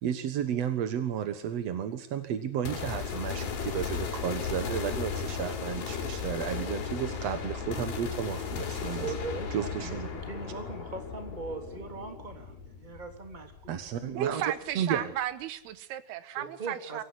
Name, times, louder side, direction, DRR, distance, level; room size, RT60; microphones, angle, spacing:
voice 1, 0.0-9.0 9.5-10.1 13.7-15.1, right 9 dB, 60° right, 9 dB, 1.8 m, -33 dB
sound 1, 2.7-14.0, left 6 dB, 70° left, 4.9 m, -36 dB
voice 2, 8.8-14.4 16.4-17.0, right 4 dB, 10° right, 5 dB, 2.7 m, -40 dB
voice 3, 14.2-17.0, right 11 dB, 80° right, 14 dB, 3.1 m, -34 dB
24.0 x 17.0 x 9.8 m, 0.66 s
omnidirectional pair, 4.6 m